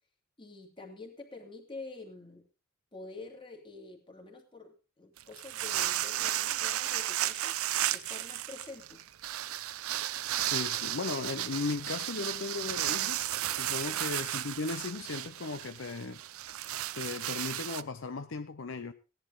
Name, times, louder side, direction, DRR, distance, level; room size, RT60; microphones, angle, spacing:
voice 1, 0.4-2.4 2.9-7.6 7.9-9.0 13.6-14.0, left 3 dB, 25° left, 2.5 m, -47 dB
sound 1, 5.2-17.8, right 13 dB, 80° right, 0.5 m, -34 dB
voice 2, 10.4-16.2 16.9-18.9, left 4 dB, 60° left, 0.7 m, -37 dB
16.5 x 11.0 x 3.9 m
head